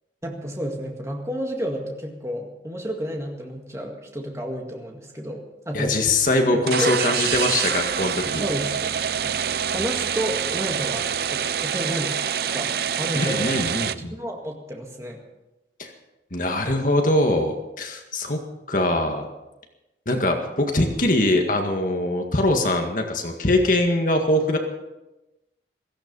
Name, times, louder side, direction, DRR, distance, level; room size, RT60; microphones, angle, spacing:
voice 1, 0.2-6.0 6.5-6.9 7.3-7.5 8.3-9.4 9.7-12.2 12.4-15.2, equal, 15° right, 1 dB, 2.0 m, -31 dB
voice 2, 5.7-8.4 13.1-14.1 15.8-15.9 16.3-18.4 18.7-19.3 20.1-24.6, left 1 dB, 45° left, 3 dB, 1.9 m, -22 dB
sound 1, 6.6-13.9, right 8 dB, 55° right, 0.5 m, -26 dB
16.5 x 14.5 x 5.5 m, 1.0 s
head